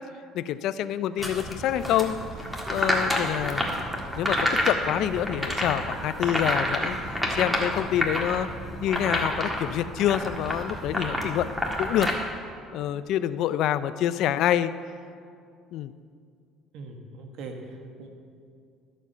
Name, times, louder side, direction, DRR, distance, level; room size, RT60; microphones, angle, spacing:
voice 1, 0.3-2.2 2.7-3.7 4.2-8.5 8.8-11.5 11.8-12.1 12.7-14.7 15.7-15.9, left 11 dB, 65° left, 14 dB, 0.4 m, -27 dB
sound 1, 1.2-12.1, equal, 5° right, 1.6 m, -29 dB
voice 2, 16.7-18.1, right 3 dB, 70° right, 4 dB, 1.5 m, -41 dB
13.0 x 7.2 x 5.6 m, 2.3 s
cardioid pair, 105°, 0 cm